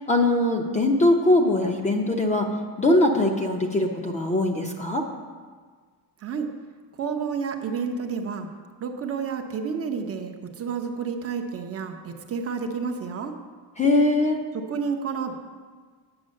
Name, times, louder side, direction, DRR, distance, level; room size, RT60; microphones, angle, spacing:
voice 1, 0.1-2.5 2.8-5.1 13.8-14.4, left 1 dB, 15° left, 2 dB, 0.6 m, -21 dB
voice 2, 7.0-8.5 8.8-13.3 14.5-15.3, right 5 dB, 30° right, 3 dB, 0.6 m, -30 dB
8.7 x 8.5 x 6.4 m, 1.5 s
cardioid pair, 170°, 47 cm